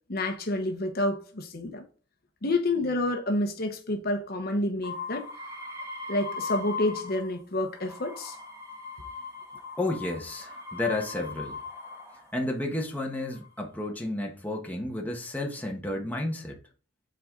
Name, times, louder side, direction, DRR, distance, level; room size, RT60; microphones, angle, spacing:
voice 1, 0.1-1.8 2.4-5.3 6.1-8.4, left 2 dB, 45° left, 0.9 m, -29 dB
sound 1, 4.8-7.4 7.7-12.3 13.0-13.6, left 4 dB, 15° right, 1.7 m, -39 dB
voice 2, 9.8-11.6 12.3-16.6, left 2 dB, 10° left, 1.2 m, -32 dB
7.7 x 4.0 x 3.7 m
head